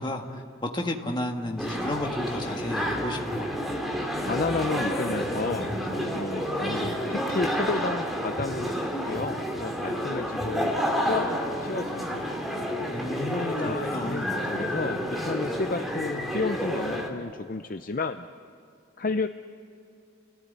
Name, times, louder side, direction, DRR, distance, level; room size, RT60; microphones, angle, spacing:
voice 1, 0.0-3.5 12.9-14.3, left 1 dB, 20° left, 2 dB, 1.8 m, -33 dB
sound 1, 1.6-17.1, equal, ahead, 2.5 m, -30 dB
voice 2, 4.2-10.7 11.1-12.3 13.1-18.3 19.0-19.3, left 3 dB, 40° left, 9 dB, 0.6 m, -32 dB
30.0 x 18.0 x 9.5 m, 2.6 s
head